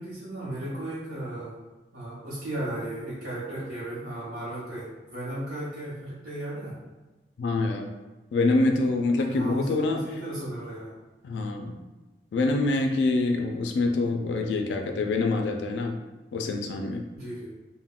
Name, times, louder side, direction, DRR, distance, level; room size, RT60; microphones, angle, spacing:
voice 1, 0.0-1.6 1.9-6.8 9.3-10.9 17.1-17.5, right 1 dB, 75° right, -10 dB, 0.8 m, -35 dB
voice 2, 7.4-7.9 8.3-10.0 11.2-11.8 12.3-16.0 16.3-17.1, left 2 dB, 90° left, 3 dB, 0.3 m, -25 dB
3.5 x 2.1 x 2.3 m, 1.1 s
head